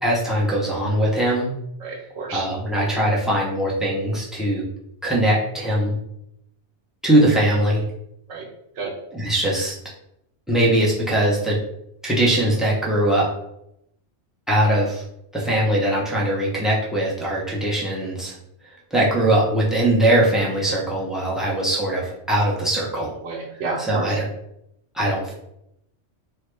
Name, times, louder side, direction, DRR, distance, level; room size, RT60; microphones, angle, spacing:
voice 1, 0.0-1.5 2.3-4.6 5.0-6.0 7.0-7.8 9.1-9.7 10.5-11.6 12.0-13.3 14.5-15.0 15.3-18.4 18.9-23.1 23.8-24.2 24.9-25.3, right 1 dB, ahead, -4 dB, 0.4 m, -21 dB
voice 2, 1.8-2.5 8.3-8.5 8.8-8.9 21.4-21.5 23.2-24.2, right 3 dB, 85° right, 0 dB, 1.0 m, -30 dB
3.3 x 2.0 x 3.2 m, 0.80 s
omnidirectional pair, 1.2 m